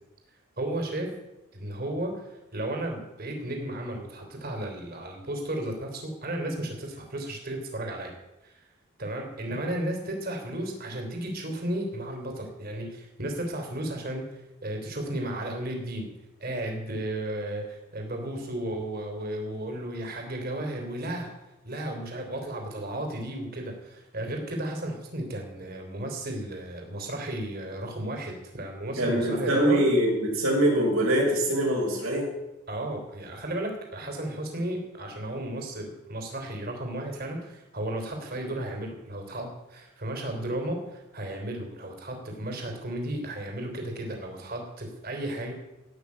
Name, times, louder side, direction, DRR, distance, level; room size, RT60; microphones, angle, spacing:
voice 1, 0.6-1.1 1.5-8.1 8.4-8.6 9.0-16.1 16.4-21.3 21.6-29.8 32.7-45.5, right 1 dB, 45° right, 3 dB, 3.3 m, -34 dB
voice 2, 29.0-32.3, equal, 75° right, -1 dB, 5.4 m, -23 dB
17.5 x 6.1 x 8.5 m, 0.96 s
head